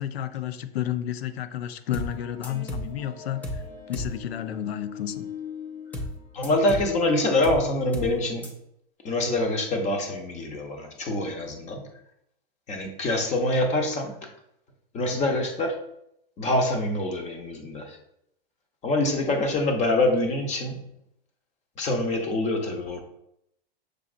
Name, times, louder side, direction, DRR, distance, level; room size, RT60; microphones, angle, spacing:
voice 1, 0.0-5.3, left 10 dB, 85° left, 0.5 m, -31 dB
sound 1, 1.9-2.2 2.4-2.9 3.4-3.7 3.9-4.2 5.9-6.2 6.4-6.9 7.4-7.7 7.9-8.2 8.4-8.5, left 1 dB, 5° left, 0.3 m, -32 dB
sound 2, 2.0-7.2, left 7 dB, 50° left, 1.1 m, -42 dB
voice 2, 6.3-8.5 9.0-11.9 12.7-14.3 14.9-15.8 16.4-18.0 18.8-20.9 21.8-23.0, left 2 dB, 25° left, 0.7 m, -25 dB
6.1 x 2.8 x 2.5 m
supercardioid pair, 140°, 30 cm